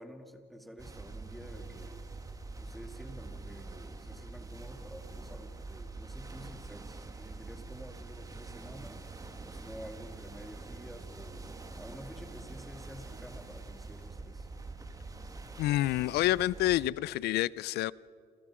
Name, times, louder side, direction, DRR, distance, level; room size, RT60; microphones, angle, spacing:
voice 1, 0.0-2.1 2.6-9.1 9.4-11.5 11.8-14.5, equal, ahead, 5 dB, 2.5 m, -50 dB
sound 1, 0.8-16.9, right 3 dB, 20° right, 1.8 m, -45 dB
voice 2, 15.6-17.9, left 15 dB, 75° left, 22 dB, 0.5 m, -28 dB
28.5 x 28.5 x 5.0 m, 2.4 s
cardioid pair, 110°, 17 cm